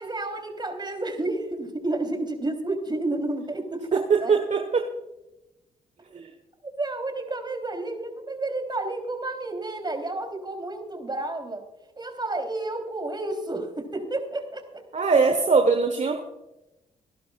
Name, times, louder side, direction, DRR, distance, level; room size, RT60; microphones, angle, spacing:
voice 1, 0.0-4.4 6.1-6.2 6.6-11.6 12.0-15.0, right 2 dB, 25° right, 4 dB, 3.8 m, -31 dB
voice 2, 4.1-4.8 6.1-6.3 14.9-16.2, right 4 dB, 40° right, 6 dB, 1.4 m, -21 dB
26.5 x 11.0 x 2.5 m, 0.96 s
hypercardioid pair, 45°, 18 cm